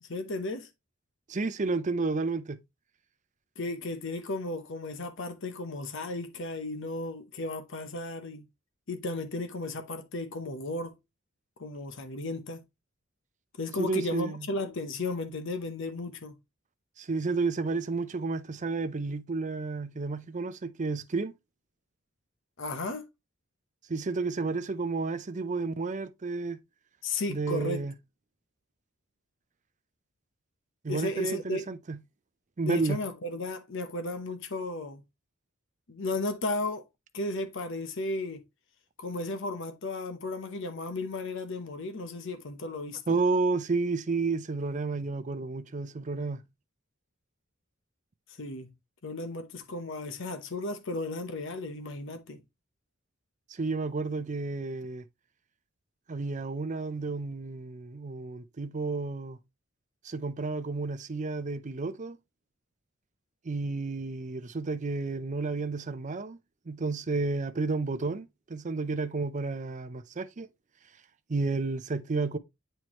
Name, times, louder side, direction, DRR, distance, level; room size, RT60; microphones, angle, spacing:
voice 1, 0.0-0.7 3.6-8.5 8.9-10.9 11.6-12.6 13.6-16.4 22.6-23.1 27.0-27.8 30.9-31.6 32.6-35.0 35.9-36.8 37.1-38.4 39.0-43.0 48.4-48.7 49.0-52.4, left 2 dB, 65° left, 0.9 m, -34 dB
voice 2, 1.3-2.6 13.8-14.5 17.0-21.3 23.9-26.6 27.3-27.9 30.8-32.0 32.6-33.0 43.1-46.4 53.5-55.1 56.1-59.4 60.0-62.2 63.4-66.4 66.7-70.5 71.3-72.4, right 3 dB, 35° right, 0.5 m, -31 dB
8.0 x 4.5 x 3.0 m
head